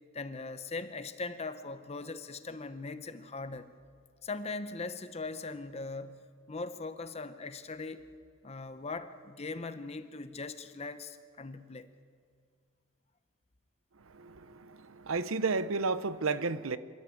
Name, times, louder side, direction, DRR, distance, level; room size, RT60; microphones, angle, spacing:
voice 1, 0.1-3.7 4.2-8.0 8.4-11.9, left 3 dB, 30° left, 0.8 m, -40 dB
voice 2, 14.1-16.8, right 4 dB, 75° right, 0.8 m, -32 dB
26.0 x 13.5 x 8.3 m
head